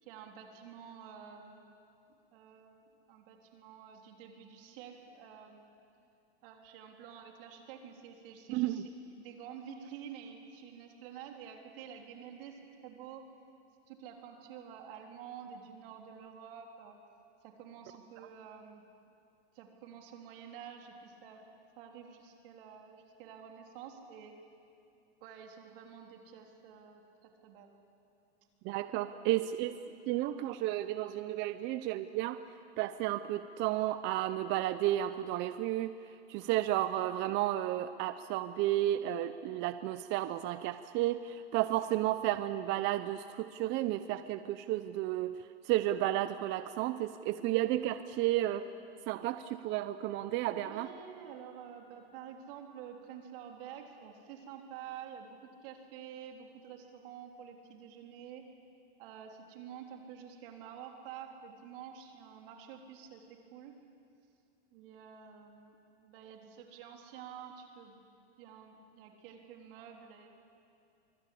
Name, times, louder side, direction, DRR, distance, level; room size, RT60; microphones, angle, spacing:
voice 1, 0.0-1.9 2.3-5.7 6.4-13.2 13.9-17.0 17.4-18.8 19.5-21.5 21.8-24.3 25.2-27.7 29.1-29.3 50.4-58.4 59.0-63.7 64.7-68.0 68.4-70.3, right 8 dB, 55° right, 2 dB, 3.5 m, -49 dB
voice 2, 28.6-29.8 30.1-32.4 32.8-35.9 36.3-45.3 45.6-48.6 49.1-50.9, right 14 dB, 35° right, 11 dB, 0.7 m, -32 dB
24.5 x 22.0 x 8.6 m, 2.5 s
supercardioid pair, 135°, 33 cm